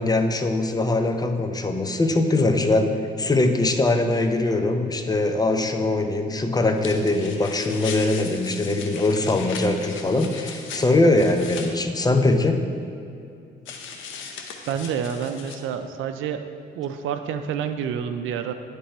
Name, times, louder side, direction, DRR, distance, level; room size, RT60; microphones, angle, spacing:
voice 1, 0.0-12.6, left 2 dB, 20° left, 6 dB, 0.5 m, -22 dB
sound 1, 6.8-11.7 13.7-15.6, left 5 dB, 75° left, 0.8 m, -38 dB
voice 2, 14.7-16.5 16.7-18.5, right 8 dB, 80° right, 8 dB, 0.5 m, -28 dB
10.0 x 3.4 x 4.2 m, 2.6 s
cardioid pair, 90°, 20 cm